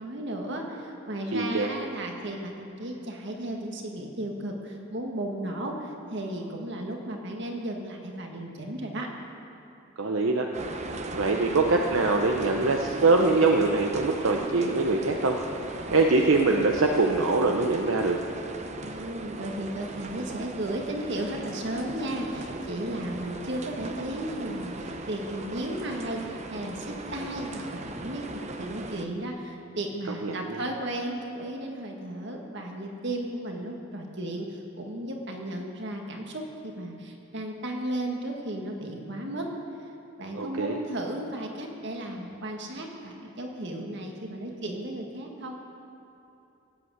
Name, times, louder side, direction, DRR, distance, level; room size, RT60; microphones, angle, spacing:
voice 1, 0.0-9.1 18.8-39.5 40.2-45.6, right 1 dB, 60° right, 1 dB, 1.8 m, -34 dB
voice 2, 1.3-1.7 10.0-10.5 11.1-15.4 15.9-18.2 30.2-30.6 40.3-40.8, right 3 dB, 80° right, 2 dB, 0.9 m, -23 dB
Wind Gusts and Rain, 10.5-29.1, right 2 dB, 35° right, 0.8 m, -38 dB
17.5 x 8.0 x 8.1 m, 2.9 s
head